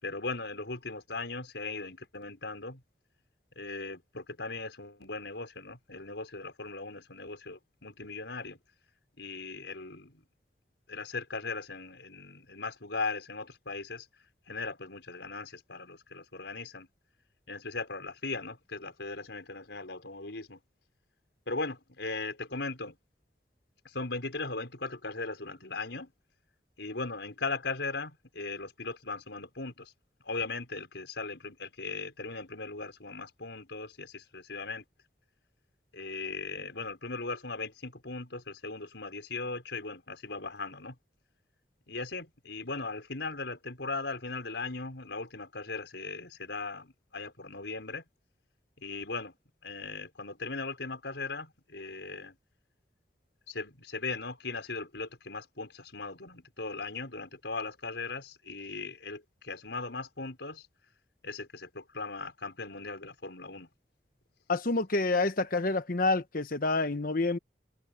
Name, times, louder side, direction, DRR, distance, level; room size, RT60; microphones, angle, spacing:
voice 1, 0.0-2.8 3.5-8.6 9.2-10.2 10.9-14.1 14.5-16.9 17.5-20.6 21.5-23.0 23.8-26.1 26.8-29.9 30.2-34.8 35.9-40.9 41.9-48.0 48.8-49.3 49.6-52.3 53.5-60.7 61.2-63.7, left 3 dB, 85° left, 5.2 m, -38 dB
voice 2, 64.5-67.4, left 3 dB, 55° left, 1.1 m, -28 dB
head